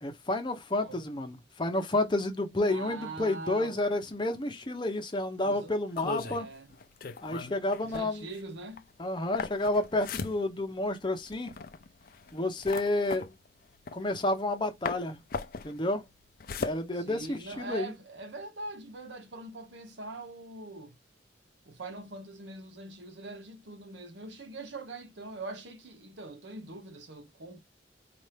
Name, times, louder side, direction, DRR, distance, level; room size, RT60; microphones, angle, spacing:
voice 1, 0.0-6.5 7.2-8.2 9.0-11.5 12.3-13.3 13.9-15.2 15.6-16.0 16.6-17.9, left 2 dB, 25° left, 0.8 m, -30 dB
voice 2, 2.7-3.8 5.4-5.7 6.2-6.7 7.8-8.9 16.9-20.9 21.6-27.6, right 2 dB, 75° right, 0.9 m, -43 dB
sound 1, 5.9-14.6 14.8-17.7, left 4 dB, 50° left, 0.4 m, -39 dB
4.3 x 2.5 x 3.3 m
head